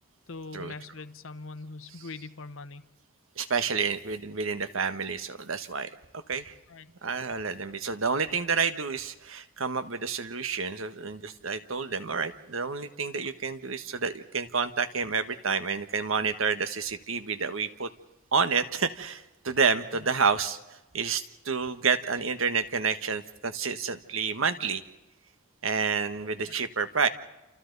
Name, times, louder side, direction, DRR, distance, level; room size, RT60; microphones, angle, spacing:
voice 1, 0.3-2.9 6.7-6.9 26.5-26.6, left 3 dB, 70° left, 10 dB, 1.0 m, -42 dB
voice 2, 3.4-5.9 6.3-6.5 7.0-17.9 18.3-24.8 25.6-27.1, right 5 dB, 75° right, 10 dB, 1.4 m, -29 dB
29.5 x 28.5 x 4.1 m, 0.99 s
head